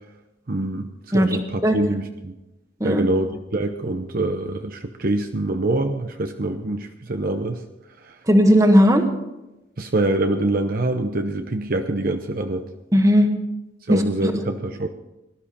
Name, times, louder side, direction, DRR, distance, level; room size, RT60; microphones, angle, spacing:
voice 1, 0.5-2.4 2.8-3.3 3.5-7.6 8.0-8.2 9.8-12.7 13.9-14.9, right 2 dB, 50° right, 6 dB, 0.8 m, -25 dB
voice 2, 8.3-9.1 12.9-13.3 13.9-14.3, equal, 20° right, 5 dB, 1.5 m, -16 dB
19.0 x 12.5 x 4.3 m, 0.96 s
head